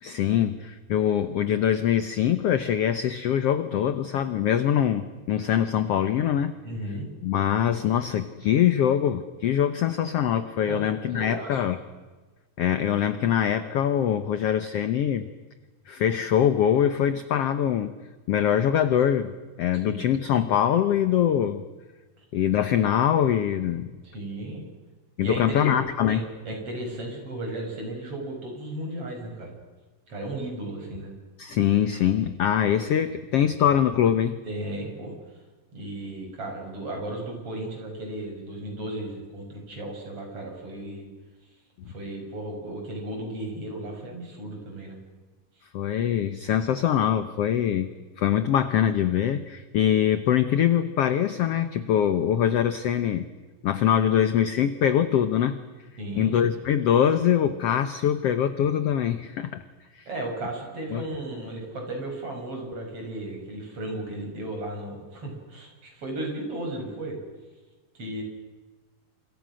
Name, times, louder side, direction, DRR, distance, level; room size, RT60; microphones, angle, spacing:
voice 1, 0.0-6.5 7.2-11.8 12.6-15.3 15.9-18.0 18.3-19.3 19.6-21.6 22.3-23.9 25.2-26.2 31.4-34.4 45.7-47.9 48.2-53.3 53.6-55.6 56.2-59.6 59.9-60.1 60.9-61.0, left 9 dB, 70° left, 11 dB, 1.5 m, -23 dB
voice 2, 6.6-7.1 10.6-11.6 19.8-20.2 22.2-22.3 24.0-24.7 25.2-25.8 26.1-29.5 30.1-31.1 34.5-35.2 35.7-41.1 41.9-45.0 45.6-45.7 56.0-56.6 60.1-67.2 67.9-68.2, right 1 dB, 40° right, 1 dB, 7.5 m, -35 dB
30.0 x 27.5 x 6.4 m, 1.3 s
omnidirectional pair, 4.0 m